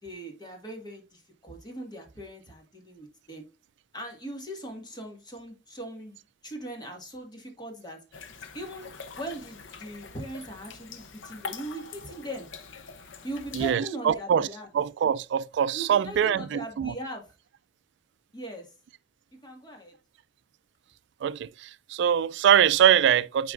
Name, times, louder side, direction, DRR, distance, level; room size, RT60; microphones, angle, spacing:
voice 1, 0.0-3.5 3.9-8.0 8.5-12.5 13.2-14.7 15.7-17.3 18.3-18.7 19.4-20.0, right 1 dB, 25° left, 1.8 m, -40 dB
sound 1, 8.1-13.7, left 5 dB, 85° left, 0.8 m, -44 dB
voice 2, 13.5-14.5 14.7-16.9 21.2-23.5, right 9 dB, 65° right, 0.3 m, -23 dB
9.3 x 4.7 x 2.5 m
head